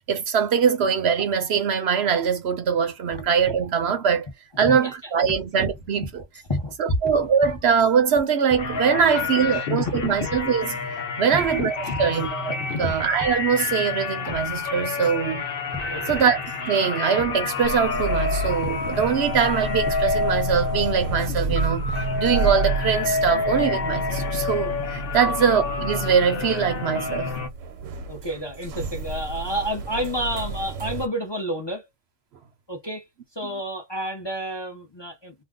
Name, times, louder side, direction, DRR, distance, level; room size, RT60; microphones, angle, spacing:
voice 1, 0.1-4.3 4.6-6.2 6.8-10.8 11.2-15.4 16.1-21.9 22.2-27.3, right 7 dB, 65° right, 0.8 m, -22 dB
sound 1, 5.6-6.5 7.1-8.2 8.5-9.4 9.9-11.0 11.4-12.3 12.8-14.0 14.3-15.2 15.7-16.9 17.2-18.0 18.6-19.8 20.1-20.9 21.5-22.7, left 1 dB, 15° right, 0.5 m, -42 dB
voice 2, 6.5-7.0 9.1-10.2 11.3-11.4 11.8-12.0 12.6-12.9 15.9-16.2 25.2-25.3 28.1-31.9 32.7-33.1 33.3-35.3, equal, 25° left, 0.7 m, -30 dB
sound 2, 8.6-27.5, left 4 dB, 55° left, 0.9 m, -28 dB
sound 3, 17.6-31.1, right 3 dB, 90° right, 1.0 m, -31 dB
2.5 x 2.2 x 3.6 m
omnidirectional pair, 1.3 m